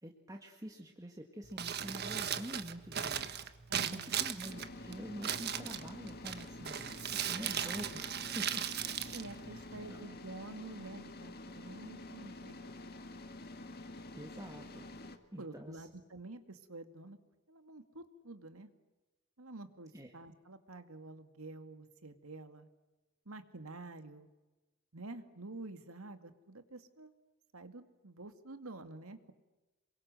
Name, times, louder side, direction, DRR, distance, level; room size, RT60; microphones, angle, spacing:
voice 1, 0.0-3.3 3.9-7.0 7.2-8.6 9.4-9.6 9.9-10.0 14.1-14.8 15.3-15.9 19.9-20.1, equal, 15° right, 1 dB, 1.9 m, -46 dB
Crumpling crinkling, 1.4-10.0, right 9 dB, 50° right, 1.4 m, -38 dB
voice 2, 3.7-4.2 7.4-7.5 9.1-12.7 15.4-17.2 17.5-18.7 19.4-22.7 23.3-24.3 24.9-27.1 27.5-29.3, right 2 dB, 85° right, 8 dB, 2.2 m, -49 dB
sound 1, 4.4-15.2, left 2 dB, 45° left, 2.0 m, -48 dB
27.5 x 23.5 x 7.7 m, 1.1 s
head